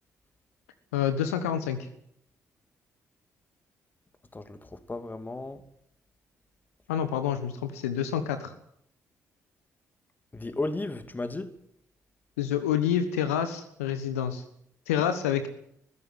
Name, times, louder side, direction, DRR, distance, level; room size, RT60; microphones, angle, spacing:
voice 1, 0.9-1.9 6.9-8.5 12.4-14.4 14.9-15.5, left 9 dB, 75° left, 1.3 m, -28 dB
voice 2, 4.3-5.6 10.3-11.5, left 2 dB, 25° left, 2.6 m, -34 dB
21.0 x 15.5 x 9.5 m
figure-of-eight pair, 40°, 8 cm